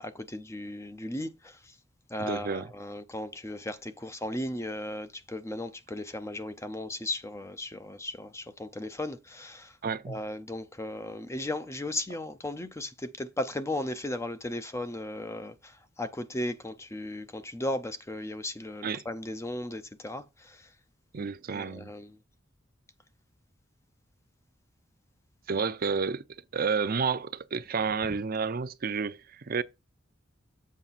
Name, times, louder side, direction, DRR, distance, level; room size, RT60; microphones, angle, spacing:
voice 1, 0.0-1.8 2.1-9.8 10.1-20.7 21.5-22.2, left 1 dB, 15° left, 0.5 m, -36 dB
voice 2, 2.2-2.7 9.8-10.2 18.8-19.0 21.1-21.9 25.5-29.6, right 5 dB, 50° right, 0.5 m, -30 dB
7.4 x 5.5 x 4.1 m
head